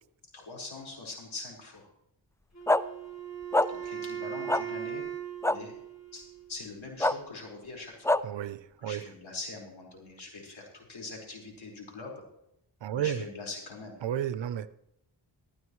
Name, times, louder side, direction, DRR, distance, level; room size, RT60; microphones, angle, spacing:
voice 1, 0.3-1.9 3.7-5.0 5.5-5.8 6.1-8.1 8.8-12.1 12.9-14.0, left 3 dB, 75° left, -1 dB, 5.0 m, -43 dB
Wind instrument woodwind instrument, 2.5-6.6, right 9 dB, 35° left, 4.1 m, -39 dB
sound 1, 2.7-2.8 3.5-3.7 4.5-4.6 5.4-5.6 7.0-7.1 8.1-8.2, left 1 dB, 5° left, 0.4 m, -23 dB
voice 2, 8.2-9.0 12.8-13.3 14.0-14.7, right 10 dB, 70° right, 15 dB, 0.8 m, -32 dB
14.5 x 14.0 x 3.2 m, 0.79 s
cardioid pair, 60°, 46 cm